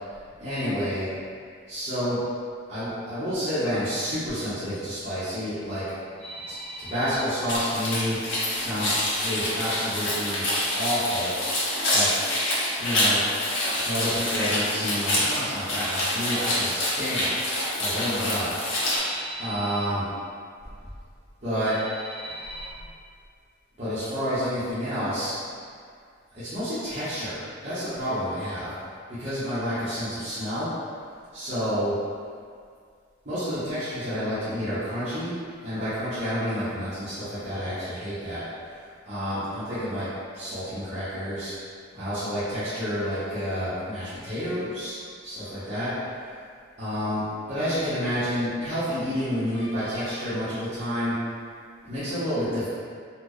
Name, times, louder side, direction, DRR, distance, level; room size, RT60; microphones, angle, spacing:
voice 1, 0.4-1.1 1.7-2.2 2.7-5.8 6.2-8.3 8.5-8.9 9.2-11.3 11.9-12.1 12.8-13.2 13.8-17.3 17.8-20.1 21.4-22.7 23.8-25.3 26.3-28.7 29.2-30.7 31.3-31.9 33.2-35.3 35.6-40.1 40.3-41.5 41.9-45.9 46.8-51.1 51.8-52.7, equal, 35° right, -16 dB, 0.9 m, -29 dB
sound 1, 7.5-19.0, left 1 dB, 80° left, 0.8 m, -26 dB
4.2 x 2.0 x 3.0 m, 2.2 s
head